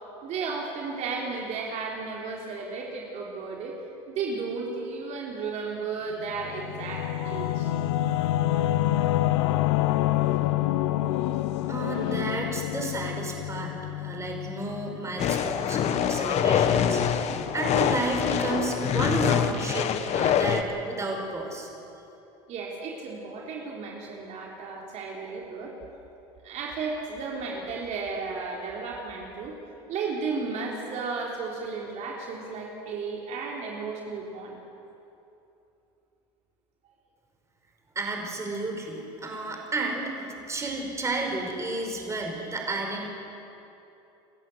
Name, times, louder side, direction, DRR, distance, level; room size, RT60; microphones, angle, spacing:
voice 1, 0.2-3.8 4.1-7.7 22.5-25.8 26.4-29.5 29.9-34.6, right 4 dB, 55° right, -2 dB, 3.8 m, -34 dB
Singing / Musical instrument, 6.2-15.4, left 14 dB, 80° left, 0.9 m, -27 dB
voice 2, 11.7-21.7 37.9-43.1, right 2 dB, 20° right, 1 dB, 5.2 m, -32 dB
sound 1, 15.2-20.6, left 8 dB, 50° left, 1.4 m, -25 dB
28.5 x 14.0 x 8.0 m, 2.9 s
supercardioid pair, 95°, 14 cm